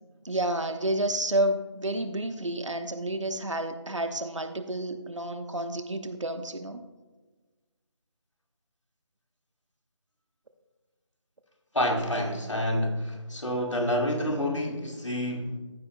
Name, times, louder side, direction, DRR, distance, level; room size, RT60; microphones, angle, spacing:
voice 1, 0.2-6.8, right 1 dB, 90° right, 8 dB, 1.1 m, -30 dB
voice 2, 11.7-15.5, equal, 90° left, 2 dB, 2.0 m, -28 dB
14.0 x 8.8 x 2.2 m, 1.3 s
figure-of-eight pair, 165°, 15 cm